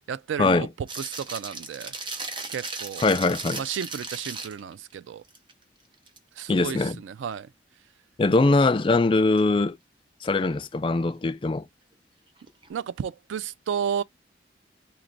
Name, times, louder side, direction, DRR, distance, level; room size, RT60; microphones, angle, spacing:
voice 1, 0.1-1.9 2.5-3.1 3.6-5.2 6.4-7.5 12.7-14.0, right 8 dB, 90° right, 0.3 m, -32 dB
sound 1, 0.9-4.7 5.3-5.5 5.9-6.4 9.4-9.5 12.4-12.7, right 3 dB, 25° right, 0.7 m, -36 dB
voice 2, 3.0-3.6 6.5-7.0 8.2-9.8 10.2-11.7, left 3 dB, 25° left, 0.3 m, -22 dB
3.3 x 3.2 x 3.8 m
head